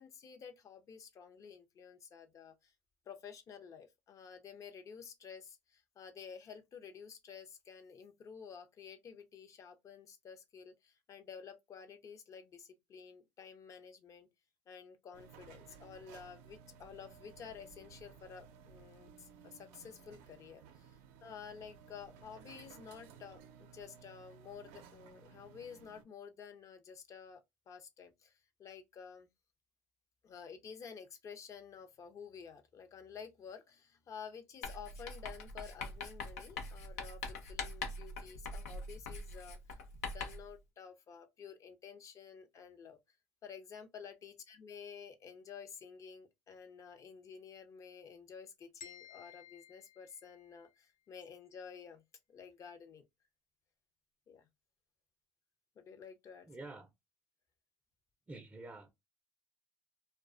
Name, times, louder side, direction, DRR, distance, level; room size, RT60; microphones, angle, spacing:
voice 1, 0.0-2.7 3.1-14.3 14.7-27.4 27.7-28.3 28.6-29.3 30.2-39.6 40.1-43.0 43.4-52.0 52.3-53.0 54.3-54.5 55.8-56.5, left 6 dB, 40° left, 0.6 m, -51 dB
sound 1, 15.1-26.0, right 7 dB, 70° right, 0.5 m, -57 dB
Writing, 34.6-40.5, left 3 dB, 90° left, 0.6 m, -43 dB
sound 2, 48.8-50.8, left 9 dB, 70° left, 1.0 m, -55 dB
voice 2, 56.5-56.9 58.3-58.9, right 2 dB, 20° right, 0.5 m, -48 dB
2.3 x 2.2 x 2.4 m
hypercardioid pair, 80°, 8 cm